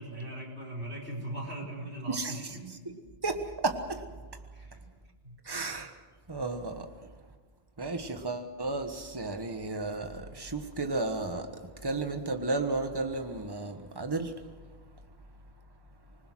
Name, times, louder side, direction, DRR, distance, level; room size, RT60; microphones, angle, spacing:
voice 1, 0.0-2.7 4.5-4.8 5.2-5.4, right 1 dB, 80° right, -1 dB, 5.5 m, -39 dB
voice 2, 3.2-4.0 5.4-6.0 6.3-6.9 7.8-11.5 11.8-14.3, right 3 dB, 20° right, 6 dB, 1.5 m, -33 dB
26.0 x 20.5 x 6.2 m, 1.4 s
omnidirectional pair, 1.1 m